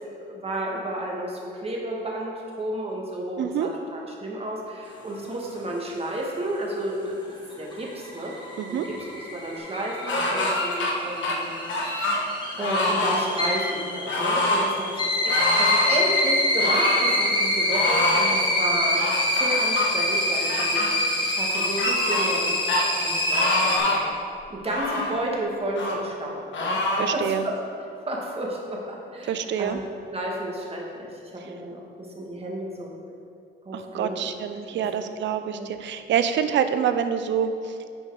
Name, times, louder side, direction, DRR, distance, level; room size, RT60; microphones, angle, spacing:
voice 1, 0.1-7.2 7.6-8.3 8.7-11.6 11.8-19.0 19.4-20.9 21.2-22.6 22.9-24.1 24.5-27.6 28.1-29.8 30.1-31.8 32.2-33.0 33.7-34.3 34.7-35.1 35.5-35.7, right 1 dB, 30° right, -2 dB, 1.8 m, -32 dB
voice 2, 3.4-3.7 8.6-8.9 27.0-27.4 29.3-29.8 33.7-37.9, right 8 dB, 65° right, 10 dB, 0.6 m, -26 dB
sound 1, 7.5-23.8, left 1 dB, 25° left, 1.6 m, -26 dB
sound 2, 10.1-10.9 11.2-12.2 12.6-13.2 14.1-14.7 15.3-16.0 16.6-17.1 17.7-18.3 19.0-19.9 20.5-20.9 21.5-22.4 22.7-22.8 23.3-24.1 24.6-25.2 25.8-26.0 26.5-27.1, left 2 dB, 70° left, 1.3 m, -25 dB
9.0 x 5.6 x 4.8 m, 2.4 s
cardioid pair, 90°, 20 cm